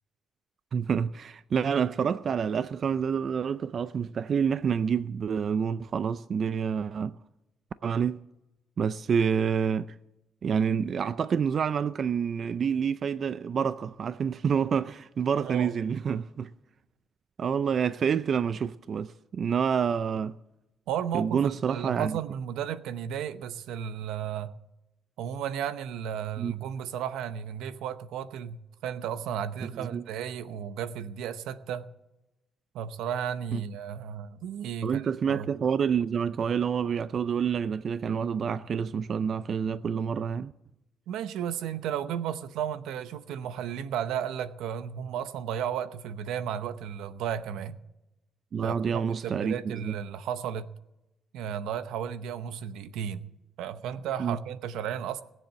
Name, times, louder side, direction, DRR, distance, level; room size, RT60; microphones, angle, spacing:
voice 1, 0.7-7.2 7.8-8.2 8.8-9.9 10.4-16.5 17.4-20.4 21.1-22.2 26.4-26.5 29.7-30.0 33.5-33.6 34.8-40.5 48.5-49.5 49.8-50.0 54.2-54.4, right 7 dB, 50° right, 0.4 m, -28 dB
voice 2, 15.4-15.8 20.9-24.5 25.2-31.9 32.7-35.5 41.1-47.8 48.6-50.7 51.3-53.3 53.6-55.2, right 9 dB, 90° right, 0.8 m, -34 dB
19.5 x 7.6 x 7.6 m
cardioid pair, 90°, 0 cm